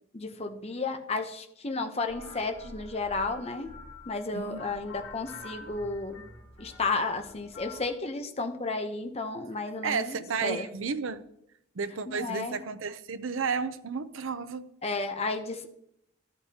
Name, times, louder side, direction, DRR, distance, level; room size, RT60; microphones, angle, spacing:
voice 1, 0.1-3.7 4.1-6.3 6.6-10.1 10.4-10.7 12.1-12.6 14.8-15.7, left 3 dB, 30° left, 0.8 m, -32 dB
sound 1, 2.1-8.0, left 3 dB, 75° left, 3.1 m, -47 dB
voice 2, 9.8-11.2 11.7-14.7, right 5 dB, 80° right, 0.6 m, -32 dB
13.5 x 8.2 x 2.9 m
head